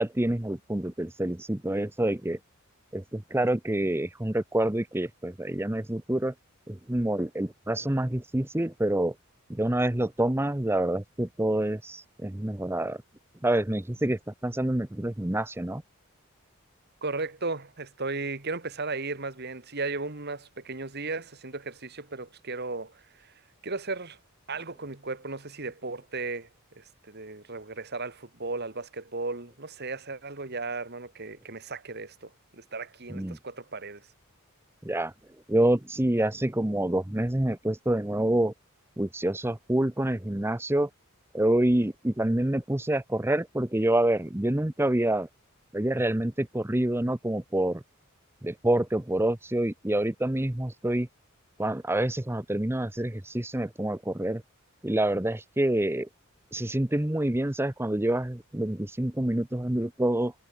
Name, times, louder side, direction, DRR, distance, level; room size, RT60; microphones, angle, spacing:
voice 1, 0.0-2.4 2.9-6.3 6.7-9.1 9.5-13.0 13.4-15.8 33.1-33.4 34.8-35.1 35.5-38.5 39.0-40.9 41.3-45.3 45.7-47.8 48.4-51.1 51.6-54.4 54.8-56.1 56.5-60.3, right 1 dB, 10° right, 0.7 m, -27 dB
voice 2, 17.0-23.3 23.6-24.2 24.5-26.5 26.7-34.0, right 3 dB, 50° right, 2.6 m, -35 dB
head